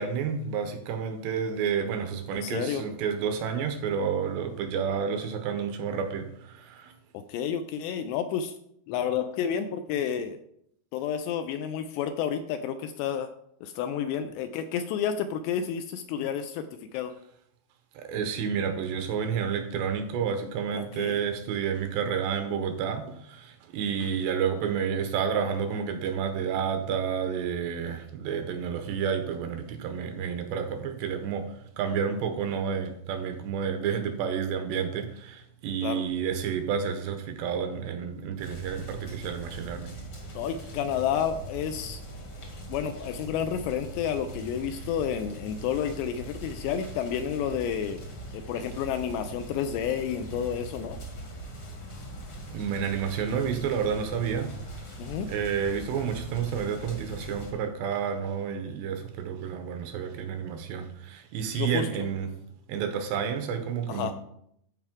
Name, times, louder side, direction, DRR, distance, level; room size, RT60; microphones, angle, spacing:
voice 1, 0.0-6.9 17.9-39.9 52.5-54.8 55.3-62.4 62.7-64.1, right 7 dB, 80° right, 2.7 m, -30 dB
voice 2, 2.3-2.8 7.1-8.6 8.9-10.4 10.9-13.3 13.6-16.7 16.9-17.1 20.7-21.2 35.8-36.1 40.4-42.0 42.7-48.0 48.3-51.0 55.0-55.3 61.6-62.1 63.9-64.1, left 8 dB, 85° left, 2.5 m, -30 dB
sound 1, 38.4-57.5, right 1 dB, 50° left, 1.5 m, -41 dB
13.5 x 4.8 x 3.6 m
omnidirectional pair, 5.2 m